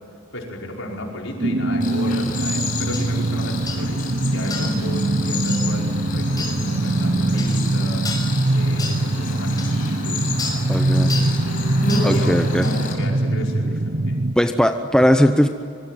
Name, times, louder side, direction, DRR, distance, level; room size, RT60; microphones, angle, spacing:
voice 1, 0.3-14.2, left 1 dB, 70° left, -1 dB, 5.2 m, -34 dB
sound 1, 1.4-14.4, right 2 dB, 50° right, 0.8 m, -22 dB
Cricket, 1.8-12.9, left 3 dB, 45° left, 6.1 m, -31 dB
sound 2, 2.9-3.1 3.7-3.9 4.5-4.8 5.5-5.6 6.4-6.6 7.4-7.6 8.0-8.3 8.8-9.0 9.6-9.7 10.4-10.6 11.1-11.3 11.9-12.1 12.6-12.8, left 3 dB, 20° left, 6.3 m, -31 dB
voice 2, 10.7-11.1 12.0-12.7 14.4-15.5, equal, 5° left, 6 dB, 0.8 m, -18 dB
25.5 x 24.0 x 9.3 m, 2.4 s
head